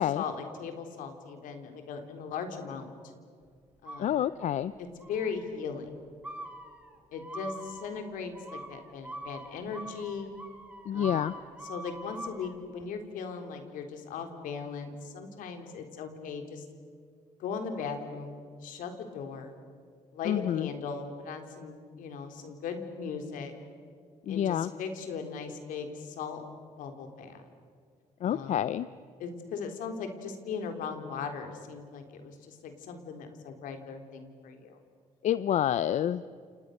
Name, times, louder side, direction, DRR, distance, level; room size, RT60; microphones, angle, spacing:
voice 1, 0.0-2.9 3.8-4.2 4.8-5.9 7.1-10.4 10.9-11.3 11.6-16.7 17.4-19.6 20.1-23.5 24.3-26.4 26.8-27.4 28.2-28.7 29.2-34.8, left 5 dB, 85° left, 5 dB, 3.7 m, -38 dB
sound 1, 3.9-4.6 5.0-5.5 6.2-12.5, right 1 dB, 10° right, 3.5 m, -44 dB
voice 2, 4.0-4.7 10.9-11.3 20.3-20.7 24.3-24.7 28.2-28.9 35.2-36.3, left 10 dB, 65° left, 15 dB, 0.6 m, -28 dB
29.5 x 28.5 x 6.7 m, 2.2 s
cardioid pair, 100°, 13 cm